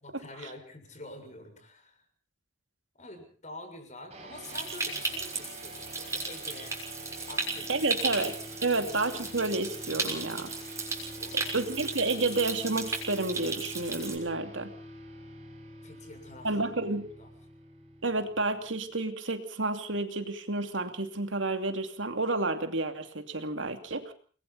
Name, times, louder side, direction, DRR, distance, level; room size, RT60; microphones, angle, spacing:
voice 1, 0.0-2.0 3.0-6.8 7.3-8.1 8.7-8.8 11.1-11.6 15.8-16.5 17.2-17.3, left 2 dB, 40° left, 6 dB, 6.7 m, -47 dB
sound 1, 4.1-18.9, equal, 35° right, 5.9 m, -46 dB
Stream, 4.4-14.2, right 3 dB, 15° right, 6.2 m, -35 dB
voice 2, 7.7-8.3 8.6-10.5 11.3-14.7 16.4-17.1 18.0-24.1, right 2 dB, 80° right, 7 dB, 2.7 m, -30 dB
29.5 x 21.5 x 4.2 m, 0.43 s
head